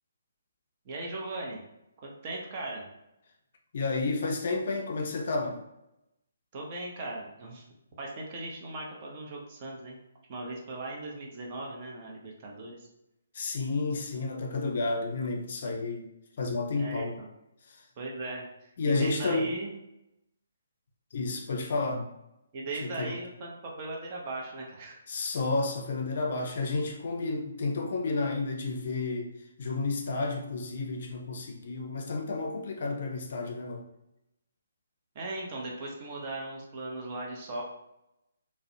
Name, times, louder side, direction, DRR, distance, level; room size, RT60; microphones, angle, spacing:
voice 1, 0.8-1.6 2.0-2.9 6.5-7.7 8.0-10.0 10.3-12.9 16.8-17.3 18.0-18.7 19.0-19.7 22.5-25.0 35.1-37.6, right 2 dB, 35° right, -1 dB, 0.6 m, -38 dB
voice 2, 3.7-5.6 13.3-16.1 16.4-17.2 17.7-17.8 18.8-19.5 21.1-22.1 22.8-23.2 25.1-29.3 29.6-33.8, left 3 dB, 55° left, 2 dB, 0.4 m, -31 dB
2.4 x 2.0 x 2.7 m, 0.87 s
figure-of-eight pair, 140°, 0 cm